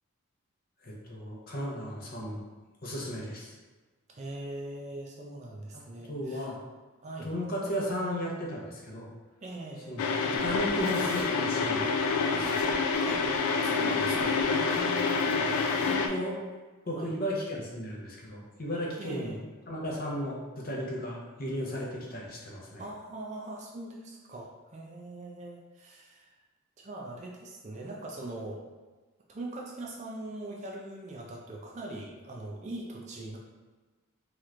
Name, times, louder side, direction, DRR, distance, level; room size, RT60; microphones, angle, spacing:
voice 1, 0.8-2.4 2.8-3.5 5.7-5.8 6.1-6.6 7.2-9.1 9.9-11.9 12.3-12.6 15.7-16.4 16.9-19.4 19.7-22.8, equal, 45° left, -3 dB, 0.6 m, -35 dB
voice 2, 4.1-6.5 7.0-7.3 9.4-10.0 13.0-15.4 16.9-17.1 19.0-19.4 22.8-26.3 26.8-28.6 29.3-33.4, right 2 dB, 35° right, -1 dB, 0.4 m, -41 dB
sound 1, 10.0-16.1, left 4 dB, 90° left, 0.3 m, -27 dB
sound 2, 10.4-15.9, right 2 dB, 75° right, 0.7 m, -50 dB
3.2 x 3.0 x 2.4 m, 1.3 s
head